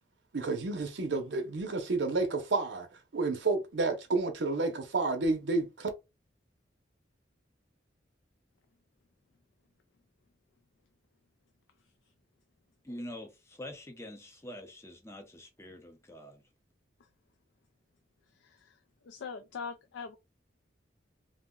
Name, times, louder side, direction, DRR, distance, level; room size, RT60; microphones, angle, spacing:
voice 1, 0.3-2.9 3.1-5.9, right 3 dB, 70° right, 0.6 m, -30 dB
voice 2, 12.8-16.4, left 1 dB, 15° left, 0.6 m, -45 dB
voice 3, 19.1-20.2, left 5 dB, 75° left, 0.4 m, -41 dB
2.5 x 2.1 x 3.6 m
head